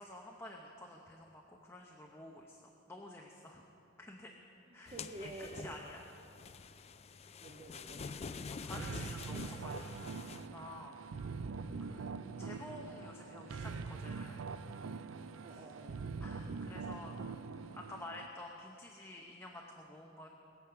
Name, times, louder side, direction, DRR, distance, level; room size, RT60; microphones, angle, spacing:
voice 1, 0.0-3.6 4.0-4.3 4.7-5.3 5.5-6.0 8.5-10.0 10.5-11.0 11.8-12.1 12.4-14.5 15.5-15.6 16.2-17.4 17.7-20.3, left 1 dB, 15° left, 0 dB, 0.8 m, -50 dB
voice 2, 4.7-5.9 7.4-8.1 12.2-12.4 15.4-16.1, right 1 dB, 35° right, 3 dB, 0.7 m, -50 dB
sound 1, 4.9-10.5, left 5 dB, 30° left, 0.4 m, -47 dB
sound 2, 8.7-18.3, right 4 dB, 85° right, 0.5 m, -43 dB
21.0 x 7.8 x 5.7 m, 2.9 s
head